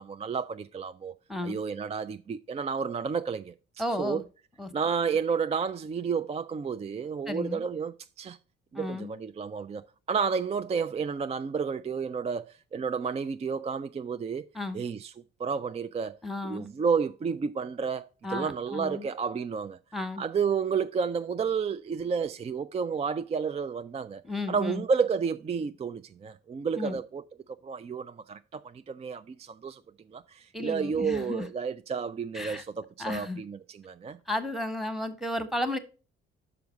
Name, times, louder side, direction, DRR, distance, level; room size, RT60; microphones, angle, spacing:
voice 1, 0.0-1.1 1.4-3.5 4.0-4.2 4.7-8.4 8.7-9.8 10.1-14.4 14.7-15.1 15.4-16.2 16.4-19.8 20.2-24.2 24.5-27.2 27.6-29.8 30.1-34.2, right 6 dB, 20° right, 0.3 m, -31 dB
voice 2, 1.3-1.6 3.8-4.2 4.6-4.7 7.3-7.7 8.7-9.1 14.5-14.8 16.2-16.7 18.2-19.1 19.9-20.2 24.2-24.8 26.7-27.0 30.5-31.5 32.3-32.6 33.0-33.4 34.3-35.8, left 1 dB, ahead, 1.1 m, -33 dB
5.9 x 4.9 x 5.1 m
hypercardioid pair, 45°, 31 cm